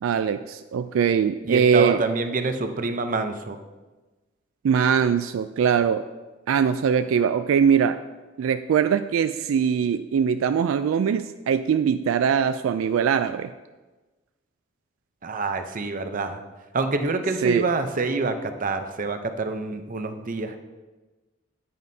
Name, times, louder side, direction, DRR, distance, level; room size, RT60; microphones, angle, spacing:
voice 1, 0.0-2.0 4.6-6.1 6.5-8.0 8.4-13.5 17.4-17.7, right 7 dB, 75° right, 11 dB, 0.3 m, -22 dB
voice 2, 1.4-3.6 15.2-16.4 16.7-20.6, right 3 dB, 40° right, 7 dB, 0.6 m, -27 dB
9.4 x 9.3 x 2.7 m, 1.2 s
head